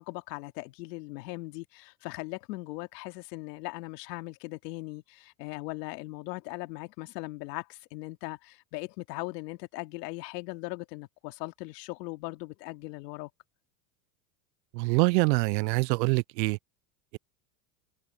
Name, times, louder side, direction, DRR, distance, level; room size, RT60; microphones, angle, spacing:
voice 1, 0.0-13.3, left 21 dB, 75° left, 2.6 m, -39 dB
voice 2, 14.7-16.6, right 25 dB, 85° right, 0.5 m, -25 dB
supercardioid pair, 100°, 49 cm